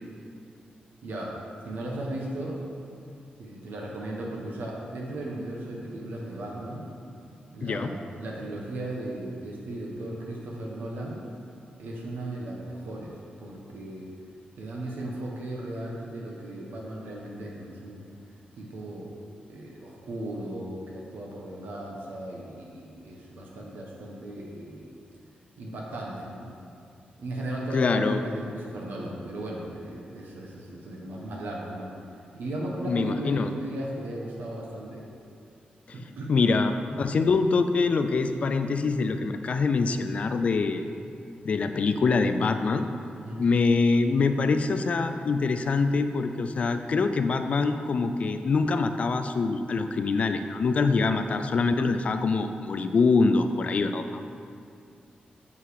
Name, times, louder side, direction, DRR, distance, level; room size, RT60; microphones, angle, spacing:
voice 1, 1.0-1.3 1.6-2.6 3.4-6.9 7.5-11.2 11.8-14.1 14.6-18.0 18.6-19.1 19.5-24.9 25.6-26.5 27.2-31.9 32.3-35.1 35.9-36.5 43.1-43.4 51.1-51.2, right 1 dB, 90° right, -3 dB, 1.3 m, -36 dB
voice 2, 27.7-28.2 32.9-33.5 36.3-40.8 41.4-42.9 43.4-54.2, left 4 dB, 45° left, 8 dB, 0.4 m, -24 dB
7.4 x 5.6 x 6.4 m, 2.5 s
wide cardioid pair, 180°, 3 cm